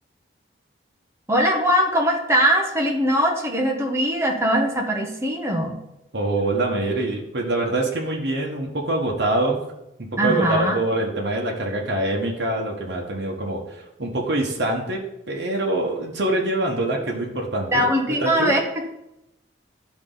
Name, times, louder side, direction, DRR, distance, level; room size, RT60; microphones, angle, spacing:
voice 1, 1.3-5.8 10.2-10.7 17.7-18.9, equal, 15° right, 0 dB, 1.0 m, -21 dB
voice 2, 6.1-9.6 10.2-15.0 15.3-17.9 18.2-18.5, right 2 dB, 60° right, -1 dB, 1.2 m, -24 dB
12.0 x 4.1 x 3.9 m, 0.89 s
head